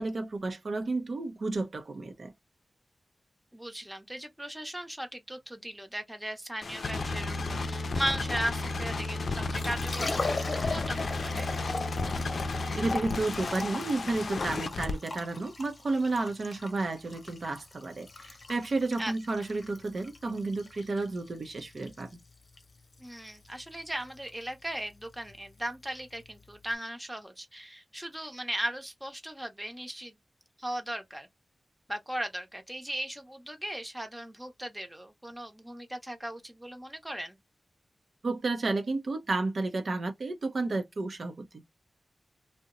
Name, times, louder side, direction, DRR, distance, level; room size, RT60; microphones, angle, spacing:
voice 1, 0.0-2.3 12.8-22.2 38.2-41.6, right 3 dB, 65° right, 0.6 m, -32 dB
voice 2, 3.5-10.4 10.7-11.5 19.0-19.1 23.0-30.2 30.6-31.3 31.9-37.4, right 1 dB, 10° right, 0.8 m, -37 dB
sound 1, 6.6-14.9, left 3 dB, 70° left, 0.4 m, -33 dB
Liquid, 9.5-26.7, left 3 dB, 55° left, 0.8 m, -40 dB
2.8 x 2.1 x 3.6 m
wide cardioid pair, 75°, 0 cm